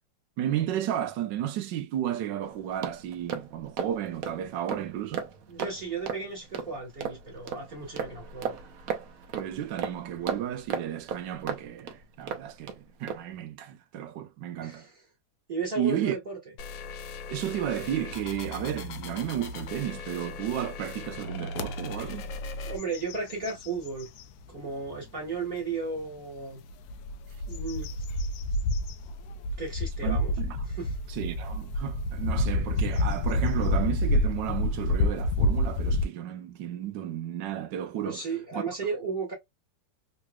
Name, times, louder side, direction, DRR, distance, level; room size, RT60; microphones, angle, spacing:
voice 1, 0.4-5.3 9.3-14.9 15.8-16.2 17.3-22.3 30.0-30.6 31.1-38.2 38.5-38.6, right 11 dB, 75° right, 1.4 m, -33 dB
sound 1, 2.4-12.8 13.1-13.3, right 7 dB, 60° right, 1.1 m, -36 dB
voice 2, 5.5-8.6 14.6-14.9 15.5-16.4 22.7-24.1 24.5-26.6 27.5-27.9 29.6-30.3 30.7-31.0 38.0-39.3, right 4 dB, 30° right, 2.0 m, -34 dB
sound 2, 16.6-22.8, left 3 dB, 90° left, 1.4 m, -39 dB
sound 3, 21.6-21.7 22.2-22.4 22.8-24.3 24.9-25.0 26.7-36.0, left 1 dB, 70° left, 0.9 m, -28 dB
3.7 x 3.1 x 2.3 m
omnidirectional pair, 2.0 m